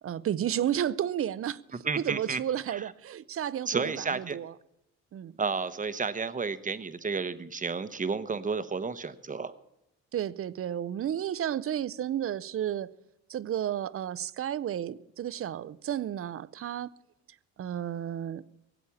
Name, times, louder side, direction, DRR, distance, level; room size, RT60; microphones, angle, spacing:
voice 1, 0.0-1.8 2.0-4.5 5.1-5.3 10.1-12.9 13.3-16.9 17.6-18.4, right 10 dB, 50° right, 0.6 m, -32 dB
voice 2, 1.8-2.4 2.7-2.8 3.7-4.4 5.4-9.5, right 5 dB, 25° right, 0.9 m, -31 dB
18.0 x 8.2 x 7.1 m
cardioid pair, 90°, 30 cm